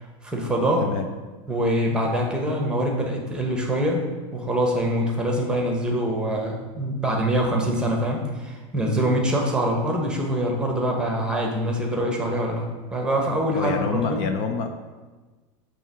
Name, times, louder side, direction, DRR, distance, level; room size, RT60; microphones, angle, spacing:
voice 1, 0.2-0.9 1.5-4.0 4.3-12.6 12.9-14.2, right 1 dB, 5° right, 0 dB, 1.0 m, -24 dB
voice 2, 13.6-14.7, left 5 dB, 50° left, 6 dB, 0.6 m, -26 dB
7.1 x 3.1 x 6.0 m, 1.3 s
supercardioid pair, 145°, 16 cm